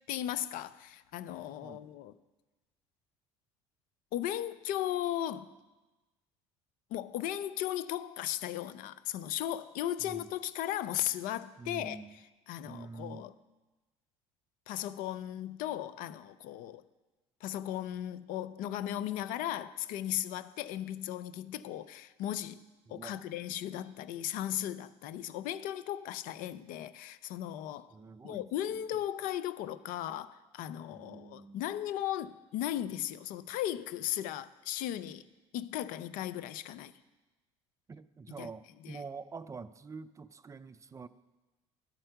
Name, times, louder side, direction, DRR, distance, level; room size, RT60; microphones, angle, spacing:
voice 1, 0.1-2.1 4.1-5.5 6.9-12.0 12.5-13.3 14.7-16.8 17.4-22.6 22.9-27.9 28.2-35.2 35.5-36.9 38.4-38.5 38.8-39.0, left 12 dB, 65° left, 0.4 m, -36 dB
voice 2, 10.0-10.4 11.6-12.2 12.6-13.3 22.9-23.2 27.9-28.4 28.7-28.8 30.9-31.6 37.9-41.1, right 4 dB, 20° right, 0.4 m, -46 dB
11.5 x 4.4 x 5.7 m
hypercardioid pair, 75°, 15 cm